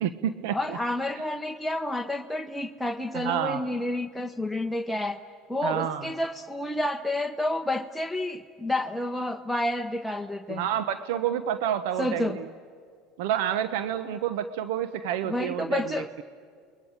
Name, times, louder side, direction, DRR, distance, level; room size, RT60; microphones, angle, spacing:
voice 1, 0.0-0.8 3.1-3.6 5.6-6.1 10.5-12.4 13.2-16.2, right 10 dB, 80° right, 11 dB, 1.1 m, -29 dB
voice 2, 0.5-5.2 5.5-10.6 12.0-12.4 15.2-16.1, left 1 dB, 5° left, 4 dB, 1.0 m, -30 dB
29.5 x 22.5 x 9.0 m, 2.2 s
supercardioid pair, 100°, 0 cm